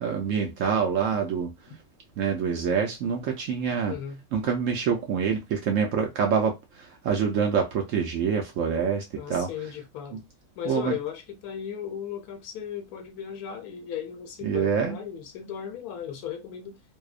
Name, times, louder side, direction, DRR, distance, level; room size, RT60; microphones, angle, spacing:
voice 1, 0.0-1.5 2.2-3.9 4.3-9.0 9.3-9.5 10.7-10.9 14.4-15.0, right 6 dB, 70° right, 0.8 m, -26 dB
voice 2, 3.9-4.2 9.1-10.2 10.6-16.8, left 9 dB, 75° left, 1.0 m, -36 dB
2.7 x 2.0 x 2.4 m
omnidirectional pair, 1.7 m